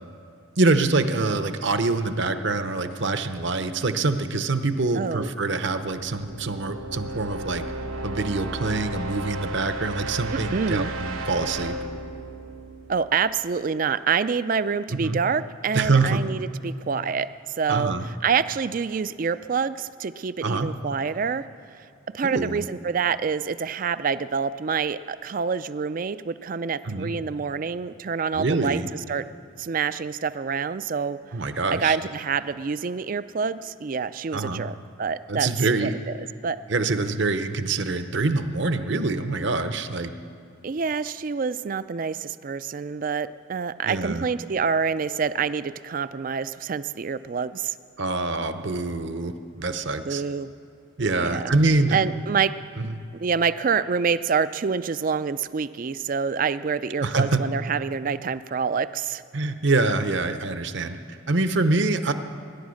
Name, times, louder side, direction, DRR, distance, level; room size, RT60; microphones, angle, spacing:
voice 1, 0.6-7.6 8.0-11.8 14.9-15.2 15.7-16.2 17.7-18.0 20.4-20.7 22.2-22.7 26.8-27.1 28.3-28.9 31.3-32.0 34.3-34.6 35.3-35.9 36.7-40.1 43.8-44.3 48.0-50.2 51.0-52.0 52.8-52.9 57.0-57.4 59.3-61.0 61.3-62.1, right 3 dB, 60° right, 9 dB, 0.8 m, -25 dB
voice 2, 4.9-5.3 10.3-10.9 12.9-17.3 17.6-21.9 22.1-28.8 29.1-29.2 29.6-31.2 31.8-35.5 35.8-36.0 36.4-36.6 40.6-47.7 50.0-50.5 51.1-51.5 51.9-52.5 53.2-59.2, right 6 dB, 40° right, 15 dB, 0.3 m, -27 dB
sound 1, 5.8-13.6, right 2 dB, 85° right, 1.1 m, -34 dB
21.5 x 10.5 x 6.4 m, 2.3 s
head